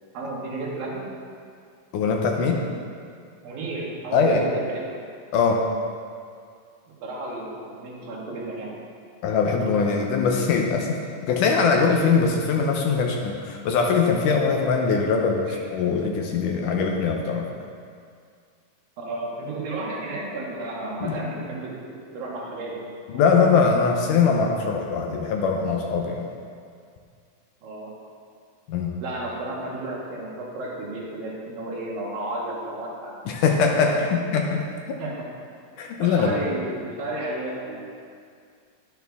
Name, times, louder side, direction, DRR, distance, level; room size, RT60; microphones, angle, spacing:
voice 1, 0.1-1.1 3.4-5.0 7.0-8.8 15.5-15.6 19.0-23.5 27.6-27.9 29.0-34.1 35.0-35.3 36.0-37.8, right 2 dB, 80° right, -3 dB, 3.3 m, -33 dB
voice 2, 1.9-2.6 4.1-4.4 5.3-5.6 9.2-17.5 21.0-21.2 23.1-26.3 28.7-29.0 33.3-35.0 35.8-36.3, left 5 dB, 75° left, 1 dB, 2.1 m, -22 dB
11.0 x 11.0 x 3.5 m, 2.2 s
omnidirectional pair, 4.1 m